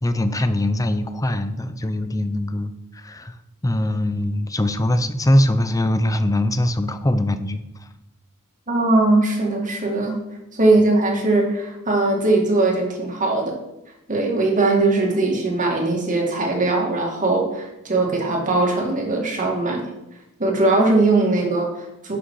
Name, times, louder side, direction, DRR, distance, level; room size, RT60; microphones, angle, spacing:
voice 1, 0.0-3.3 3.6-7.9, left 1 dB, 15° left, 10 dB, 0.6 m, -22 dB
voice 2, 8.7-10.2 10.5-13.6 14.1-19.9 20.4-22.2, right 2 dB, 35° right, 0 dB, 2.3 m, -20 dB
11.5 x 6.5 x 4.8 m, 0.90 s
head